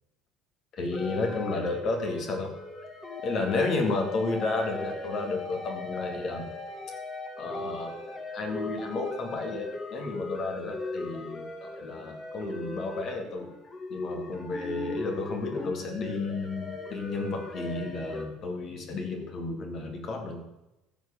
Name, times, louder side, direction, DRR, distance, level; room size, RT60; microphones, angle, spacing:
voice 1, 0.7-2.5 3.2-6.5 7.4-13.5 13.9-20.6, left 3 dB, 45° left, 4 dB, 2.3 m, -32 dB
sound 1, 0.9-18.3, left 2 dB, 30° left, 2.1 m, -39 dB
14.0 x 5.1 x 6.7 m, 0.95 s
figure-of-eight pair, 60°, 0 cm